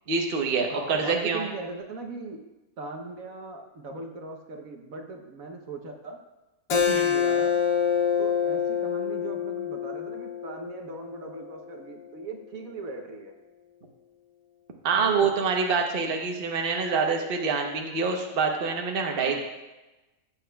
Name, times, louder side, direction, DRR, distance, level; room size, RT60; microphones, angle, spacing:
voice 1, 0.1-1.5 6.9-7.1 14.8-19.4, right 5 dB, 45° right, 2 dB, 1.0 m, -26 dB
voice 2, 0.7-2.4 2.8-6.2 6.8-7.5 8.2-13.3 15.0-15.3 19.1-19.4, right 3 dB, 65° right, 3 dB, 1.3 m, -39 dB
Keyboard (musical), 6.7-11.9, left 7 dB, 65° left, 1.1 m, -26 dB
14.5 x 8.2 x 2.3 m, 1.0 s
omnidirectional pair, 1.6 m